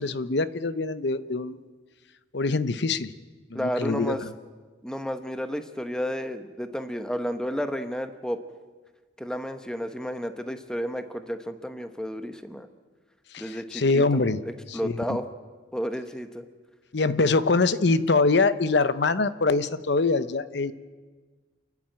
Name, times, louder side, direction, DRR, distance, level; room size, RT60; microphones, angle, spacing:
voice 1, 0.0-1.6 2.3-3.1 3.5-4.3 13.3-14.4 14.7-15.0 16.9-20.7, left 3 dB, 65° left, 14 dB, 0.8 m, -24 dB
voice 2, 3.5-4.2 4.8-8.4 9.2-12.7 13.4-14.0 14.7-15.3 15.7-16.5, equal, 5° left, 9 dB, 0.9 m, -31 dB
28.0 x 10.5 x 8.9 m, 1.4 s
head